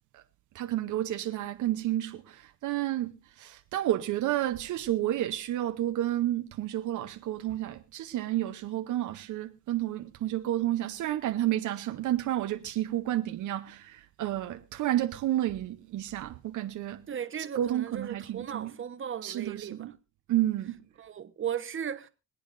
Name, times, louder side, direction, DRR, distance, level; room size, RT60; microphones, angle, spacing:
voice 1, 0.5-17.1 17.5-18.8 19.2-20.0 20.3-20.8, right 13 dB, 75° right, 0.8 m, -31 dB
voice 2, 17.1-19.9 21.0-22.1, right 8 dB, 40° right, 1.1 m, -36 dB
25.5 x 8.6 x 2.6 m
cardioid pair, 90°, 30 cm